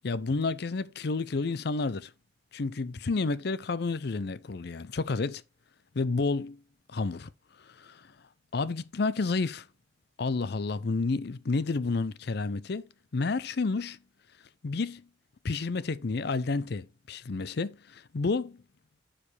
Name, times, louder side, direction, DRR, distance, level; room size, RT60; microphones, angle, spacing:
voice 1, 0.0-2.1 2.5-5.4 5.9-6.6 6.9-7.3 7.7-8.0 8.5-9.7 10.2-12.8 13.1-14.0 14.6-15.0 15.4-18.6, left 3 dB, 65° left, 0.6 m, -30 dB
11.0 x 5.1 x 3.3 m
head